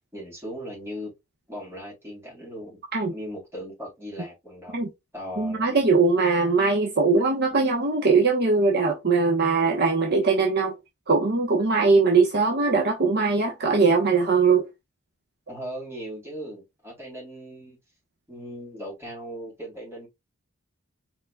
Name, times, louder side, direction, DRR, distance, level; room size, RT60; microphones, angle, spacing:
voice 1, 0.1-1.1 1.5-2.8 3.1-4.9 5.1-5.9 15.5-17.8 18.3-20.1, equal, 10° right, 3.4 m, -38 dB
voice 2, 5.4-10.7 11.1-14.7, right 4 dB, 45° right, 1.0 m, -21 dB
4.8 x 4.6 x 2.3 m
head